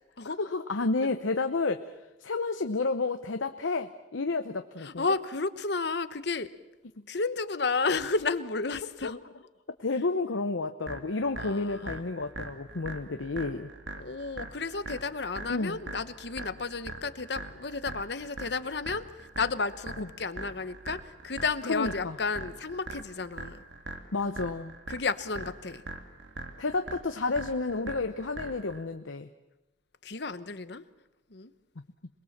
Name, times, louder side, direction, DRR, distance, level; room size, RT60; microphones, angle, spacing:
voice 1, 0.2-1.8 2.2-5.0 9.0-9.1 9.8-13.7 15.5-15.8 20.0-20.1 21.7-22.2 24.1-24.8 26.6-29.3, left 3 dB, 90° left, 7 dB, 0.9 m, -31 dB
voice 2, 4.8-6.5 7.1-9.2 11.4-12.0 14.0-19.1 19.4-23.6 24.9-25.8 30.0-30.8 31.3-31.5, left 4 dB, 60° left, 13 dB, 1.0 m, -32 dB
sound 1, 10.9-28.8, right 2 dB, 80° right, 2.4 m, -42 dB
27.0 x 21.0 x 7.3 m, 1.0 s
head